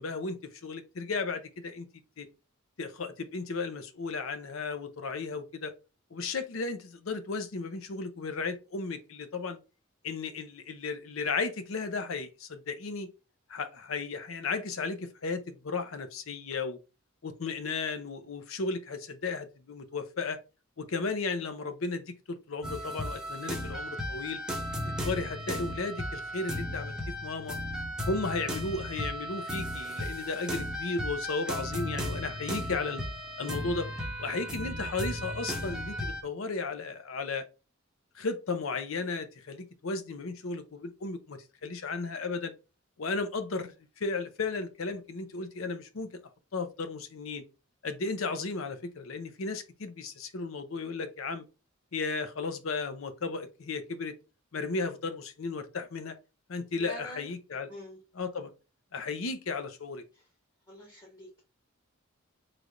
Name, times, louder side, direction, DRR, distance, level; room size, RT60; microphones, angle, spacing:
voice 1, 0.0-1.9 2.2-2.3 2.8-5.7 6.1-9.6 10.0-13.1 13.5-16.8 17.2-20.4 20.8-24.4 25.0-27.6 28.0-33.0 33.4-33.9 34.2-37.4 38.1-42.5 43.0-46.1 46.5-47.4 47.8-51.4 51.9-54.1 54.5-56.1 56.5-57.7 58.1-58.5 58.9-60.0, left 4 dB, 70° left, 0.6 m, -34 dB
sound 1, 22.6-36.2, equal, 5° right, 0.7 m, -35 dB
voice 2, 56.8-57.3 57.7-58.0 60.1-60.2 60.7-61.4, equal, 20° left, 1.1 m, -45 dB
3.3 x 2.5 x 4.3 m
head